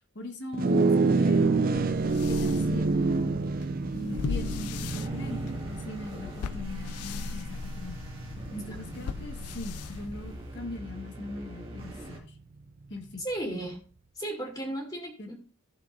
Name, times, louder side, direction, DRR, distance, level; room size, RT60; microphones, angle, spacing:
voice 1, 0.1-2.0 2.3-3.4 3.9-5.4 5.7-8.0 8.5-12.4 12.9-13.2 15.2-15.3, left 1 dB, 50° left, 5 dB, 1.5 m, -40 dB
sound 1, 0.5-10.1, right 3 dB, 40° right, 0.4 m, -28 dB
sound 2, 1.8-10.7, left 5 dB, 90° left, 0.4 m, -38 dB
sound 3, 4.1-12.2, right 1 dB, 25° right, 2.0 m, -45 dB
voice 2, 13.2-13.8 14.1-15.3, right 1 dB, 20° left, 0 dB, 2.7 m, -34 dB
15.0 x 6.9 x 2.6 m, 0.35 s
head